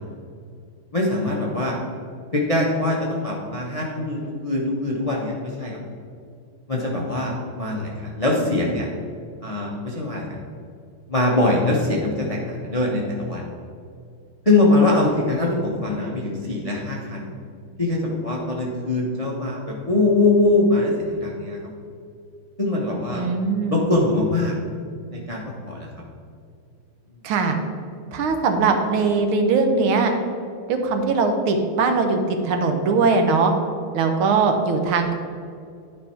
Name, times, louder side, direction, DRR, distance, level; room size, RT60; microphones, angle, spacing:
voice 1, 0.9-1.7 2.3-5.8 6.7-8.9 9.4-10.4 11.1-13.5 14.4-17.3 17.8-21.6 22.6-23.2 23.7-24.5 25.1-25.9, left 2 dB, 30° left, -3 dB, 0.6 m, -22 dB
voice 2, 23.1-23.8 27.2-27.6 28.1-30.1 30.7-33.5 33.9-35.1, right 4 dB, 75° right, 5 dB, 1.7 m, -20 dB
10.5 x 5.5 x 4.4 m, 2.4 s
omnidirectional pair, 2.4 m